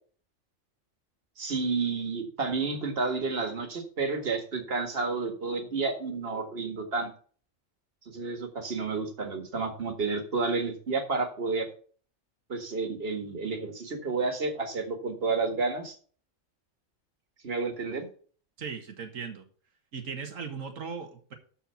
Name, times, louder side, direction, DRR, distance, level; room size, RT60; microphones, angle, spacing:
voice 1, 1.4-7.1 8.1-11.7 12.5-15.9 17.4-18.1, right 4 dB, 50° right, 5 dB, 2.0 m, -30 dB
voice 2, 18.6-19.4 19.9-21.3, right 5 dB, 80° right, 5 dB, 1.9 m, -38 dB
13.5 x 4.5 x 5.7 m, 0.43 s
omnidirectional pair, 1.3 m